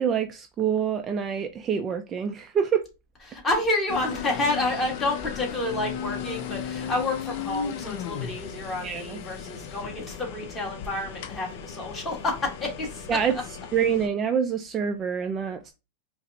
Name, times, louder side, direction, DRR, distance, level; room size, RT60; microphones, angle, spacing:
voice 1, 0.0-2.8 8.8-9.2 13.1-13.3 13.7-15.7, right 7 dB, 25° right, 6 dB, 0.3 m, -26 dB
voice 2, 3.3-13.1, left 2 dB, 15° left, -1 dB, 1.4 m, -29 dB
sound 1, 3.9-14.1, left 8 dB, 55° left, 0.5 m, -36 dB
4.9 x 2.0 x 2.7 m, 0.27 s
supercardioid pair, 140°, 0 cm